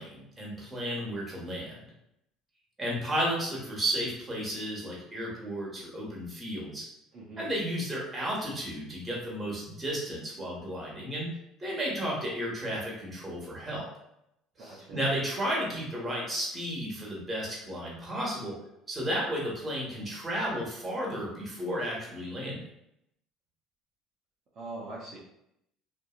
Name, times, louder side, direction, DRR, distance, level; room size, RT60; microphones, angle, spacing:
voice 1, 0.0-1.7 2.8-6.8 7.4-11.3 11.6-13.9 14.6-18.5 18.9-22.6, equal, 20° right, -3 dB, 1.4 m, -33 dB
voice 2, 7.1-7.5 14.6-15.0 24.6-25.2, right 2 dB, 55° right, -6 dB, 0.7 m, -42 dB
2.7 x 2.6 x 2.4 m, 0.79 s
hypercardioid pair, 70°, 0 cm